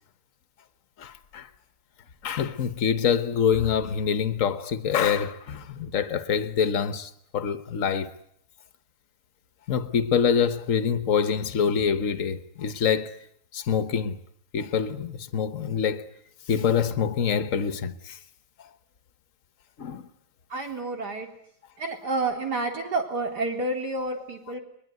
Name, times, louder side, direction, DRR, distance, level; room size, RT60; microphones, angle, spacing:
voice 1, 1.0-1.5 2.2-8.1 9.7-13.2 13.5-14.2 14.5-16.0 16.5-18.2 19.8-20.1 24.1-24.2, left 7 dB, 55° left, 1.5 m, -25 dB
voice 2, 20.5-21.3 21.8-24.6, right 2 dB, 85° right, 4.3 m, -29 dB
22.0 x 21.0 x 9.4 m
omnidirectional pair, 1.7 m